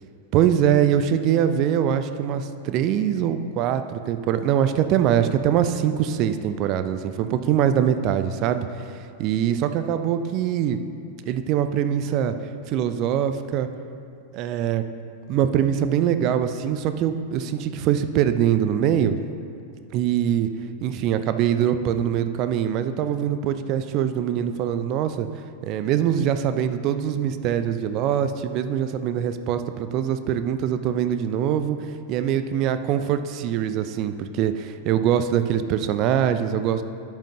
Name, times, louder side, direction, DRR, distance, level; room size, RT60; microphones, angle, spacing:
voice 1, 0.3-8.9 9.2-10.8 11.2-12.3 12.7-13.7 14.3-14.8 15.3-19.2 19.9-20.5 20.8-25.3 25.6-31.8 32.1-36.8, right 9 dB, 40° right, 10 dB, 0.4 m, -23 dB
11.5 x 7.6 x 2.9 m, 2.4 s
figure-of-eight pair, 90°, 0 cm